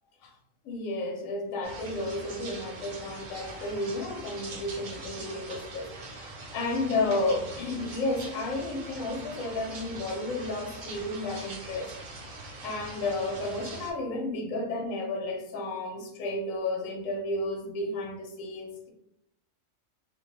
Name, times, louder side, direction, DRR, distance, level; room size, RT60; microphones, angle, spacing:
voice 1, 0.6-12.3 12.6-18.9, left 2 dB, 90° left, 2 dB, 1.0 m, -32 dB
sound 1, 1.6-13.9, right 3 dB, 60° right, 0.5 m, -42 dB
2.9 x 2.1 x 2.9 m, 0.78 s
omnidirectional pair, 1.3 m